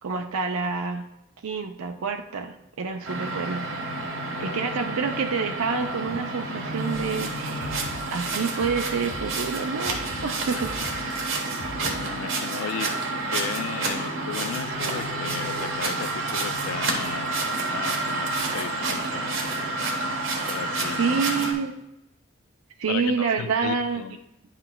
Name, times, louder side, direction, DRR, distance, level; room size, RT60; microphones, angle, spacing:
voice 1, 0.0-1.1 1.4-3.6 4.4-10.7 21.0-21.7 22.8-24.0, right 5 dB, 90° right, 4 dB, 0.5 m, -28 dB
sound 1, 3.0-21.5, right 2 dB, 70° right, 1.1 m, -29 dB
voice 2, 4.2-4.6 11.0-11.1 11.8-19.7 20.5-21.2 22.9-24.2, left 8 dB, 85° left, 15 dB, 0.3 m, -36 dB
sound 2, 6.9-12.0, equal, 45° left, 1.1 m, -42 dB
10.0 x 5.9 x 2.2 m, 0.84 s
head